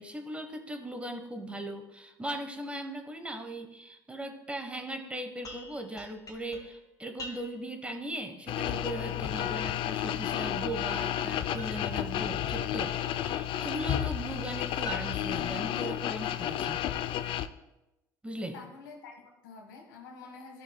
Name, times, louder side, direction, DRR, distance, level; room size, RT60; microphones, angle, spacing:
voice 1, 0.0-16.9 18.2-18.6, right 1 dB, 10° right, 5 dB, 1.1 m, -39 dB
sound 1, 5.4-7.8 11.6-13.4 14.8-16.3, left 1 dB, 35° left, 2.1 m, -47 dB
sound 2, 8.5-17.5, left 11 dB, 55° left, 0.4 m, -32 dB
voice 2, 18.5-20.6, left 4 dB, 85° left, 3 dB, 1.5 m, -48 dB
13.5 x 6.4 x 2.2 m, 0.94 s
hypercardioid pair, 70°, 10 cm